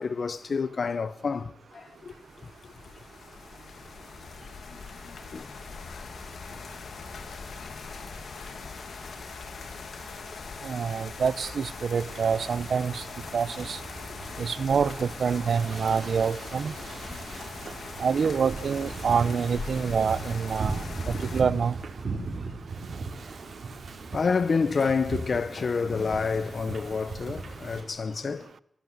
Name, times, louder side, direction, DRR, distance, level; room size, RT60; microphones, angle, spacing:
voice 1, 0.0-2.1 4.7-5.6 10.3-10.4 17.1-17.2 24.1-28.5, left 5 dB, 55° left, 1.1 m, -29 dB
sound 1, 1.9-21.4, left 4 dB, 85° left, 3.0 m, -41 dB
voice 2, 10.6-13.0 13.3-13.8 14.4-16.7 18.0-20.8 21.3-21.7, right 6 dB, 80° right, 1.0 m, -26 dB
Wind / Ocean, 12.0-27.8, right 3 dB, 65° right, 5.0 m, -38 dB
29.5 x 17.0 x 9.7 m
wide cardioid pair, 140°, 0 cm